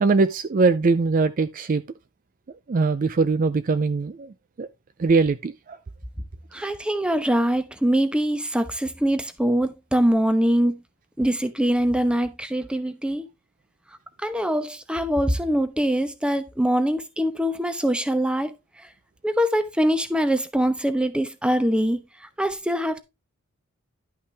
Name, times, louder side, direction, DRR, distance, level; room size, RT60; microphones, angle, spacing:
voice 1, 0.0-1.8 2.7-4.7 5.0-5.8, right 4 dB, 40° right, 0.4 m, -21 dB
voice 2, 6.5-10.8 11.2-13.3 14.2-18.5 19.2-22.0 22.4-23.0, equal, 5° right, 0.8 m, -23 dB
11.5 x 5.7 x 3.3 m
head